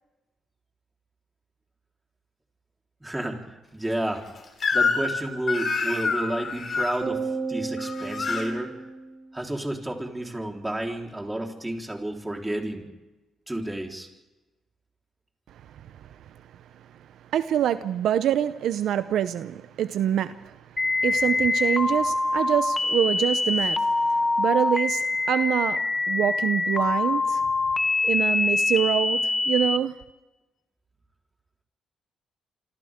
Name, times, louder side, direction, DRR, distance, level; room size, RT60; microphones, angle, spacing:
voice 1, 3.0-4.2 4.7-8.7 9.3-12.9 13.5-14.1, right 1 dB, 10° right, 3.9 m, -31 dB
Crying sobbing / Screech, 4.6-5.2 5.5-7.0 7.8-8.5, left 4 dB, 45° left, 3.6 m, -26 dB
sound 1, 7.0-9.5, right 4 dB, 45° right, 5.0 m, -33 dB
voice 2, 17.3-27.4 28.0-29.9, right 10 dB, 75° right, 0.7 m, -26 dB
sound 2, 20.8-29.8, left 3 dB, 25° left, 1.2 m, -24 dB
27.5 x 25.5 x 3.7 m
cardioid pair, 90°, 0 cm